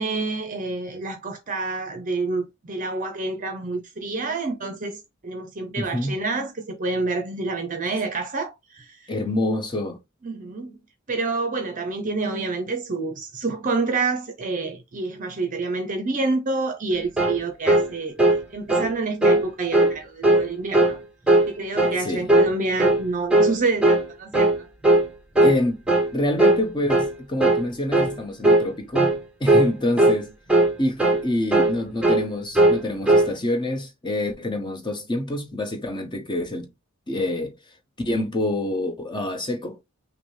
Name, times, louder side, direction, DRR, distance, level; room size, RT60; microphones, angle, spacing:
voice 1, 0.0-9.1 10.2-10.8 11.1-21.0 21.5-24.7, right 3 dB, 40° right, 0.7 m, -28 dB
voice 2, 5.8-6.2 9.1-10.0 22.0-22.3 25.4-25.8 26.1-30.3 30.8-36.7 37.1-37.6 38.0-39.8, left 1 dB, 20° left, 1.1 m, -27 dB
sound 1, 17.2-17.4 17.7-17.9 18.2-18.4 18.7-18.9 19.2-19.4 19.7-19.9 20.2-20.5 20.7-21.0 21.3-21.5 21.8-22.0 22.3-22.5 22.8-23.0 23.3-23.5 23.8-24.1 24.3-24.6 24.8-25.1 25.4-25.6 25.9-26.1 26.4-26.6 26.9-27.1 27.4-27.6 27.9-28.2 28.4-28.7 29.0-29.2 29.5-29.7 30.0-30.2 30.5-30.7 31.0-31.2 31.5-31.8 32.0-32.3 32.6-33.3, right 2 dB, 5° right, 1.0 m, -18 dB
5.8 x 2.2 x 3.3 m
head